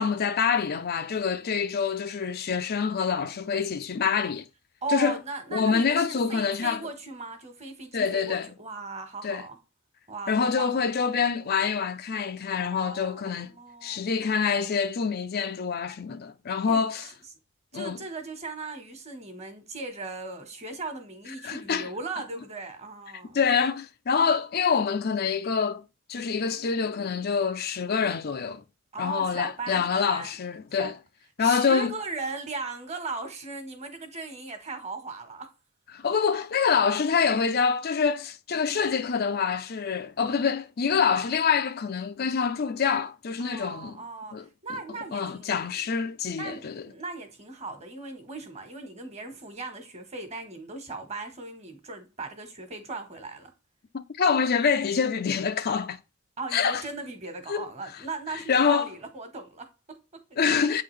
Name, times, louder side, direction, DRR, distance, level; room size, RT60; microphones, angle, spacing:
voice 1, 0.0-4.5 4.9-5.2 5.5-6.9 7.9-8.5 9.2-9.4 10.3-13.5 13.8-17.1 17.7-18.0 21.4-21.9 23.3-25.8 26.1-28.6 29.0-31.0 31.4-31.9 35.9-44.0 44.3-44.5 45.1-46.7 53.9-56.0 56.5-56.8 57.5-57.7 58.5-58.9 60.4-60.8, left 6 dB, 50° left, 0.5 m, -26 dB
voice 2, 4.8-9.6 10.1-10.7 12.5-14.1 16.7-16.8 17.7-23.4 28.9-30.3 30.8-30.9 31.4-35.5 43.4-45.8 46.3-53.5 56.4-60.7, right 3 dB, 30° right, 1.4 m, -38 dB
8.4 x 3.8 x 3.2 m
head